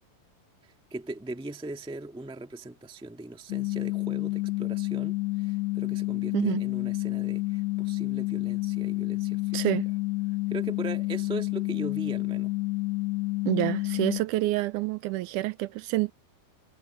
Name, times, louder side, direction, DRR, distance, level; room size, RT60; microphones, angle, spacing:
voice 1, 0.6-9.7 10.5-12.5, right 2 dB, 5° right, 0.6 m, -39 dB
sound 1, 3.5-14.2, left 22 dB, 90° left, 1.5 m, -29 dB
voice 2, 9.5-9.9 13.5-16.1, right 17 dB, 80° right, 1.8 m, -27 dB
omnidirectional pair, 4.0 m